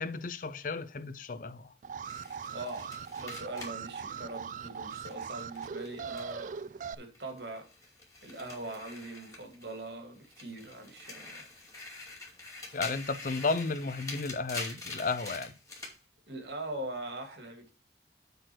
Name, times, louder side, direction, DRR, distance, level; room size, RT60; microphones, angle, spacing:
voice 1, 0.0-1.7 12.7-15.5, left 3 dB, 50° left, 0.6 m, -33 dB
Alarm, 1.8-6.9, right 6 dB, 45° right, 0.3 m, -40 dB
sound 1, 2.0-6.6 6.9-9.9 10.2-16.0, left 3 dB, 20° left, 2.5 m, -45 dB
voice 2, 2.5-7.7 8.2-11.5 16.3-17.8, right 2 dB, 70° right, 2.5 m, -42 dB
7.8 x 4.5 x 6.1 m
head